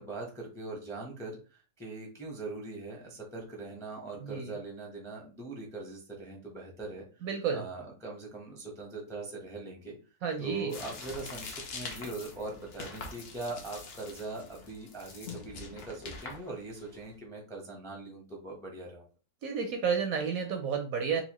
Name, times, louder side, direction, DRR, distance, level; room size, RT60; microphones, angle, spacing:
voice 1, 0.0-7.0 7.5-9.9 10.4-19.1, right 3 dB, 5° left, -1 dB, 0.6 m, -41 dB
voice 2, 4.2-4.6 7.2-7.6 10.2-10.7 19.4-21.2, right 6 dB, 70° right, 4 dB, 0.9 m, -31 dB
sound 1, 10.7-17.1, left 4 dB, 55° left, 0.7 m, -44 dB
4.1 x 2.4 x 2.9 m, 0.35 s
omnidirectional pair, 1.8 m